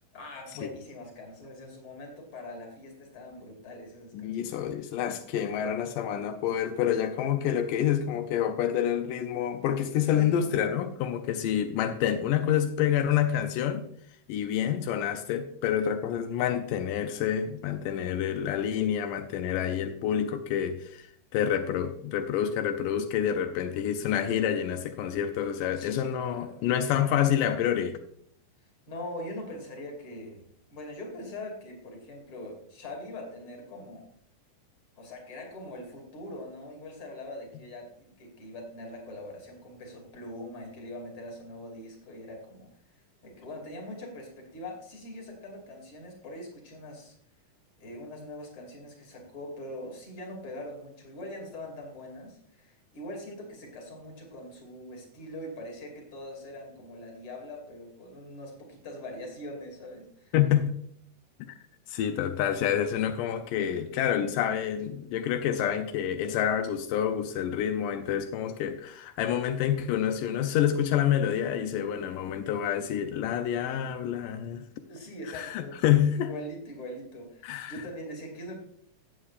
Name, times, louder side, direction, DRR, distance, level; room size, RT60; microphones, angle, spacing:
voice 1, 0.1-4.6 10.0-10.6 25.8-26.6 28.9-30.4 30.7-34.1 35.0-42.7 42.9-47.1 47.8-60.3 74.9-75.8 76.1-78.6, left 1 dB, 40° left, 1 dB, 3.2 m, -42 dB
voice 2, 4.1-13.9 14.3-28.0 60.3-60.8 61.4-61.5 61.9-74.7 75.3-76.3 77.4-77.8, left 9 dB, 85° left, 7 dB, 2.3 m, -28 dB
16.5 x 7.5 x 2.5 m, 0.67 s
omnidirectional pair, 3.7 m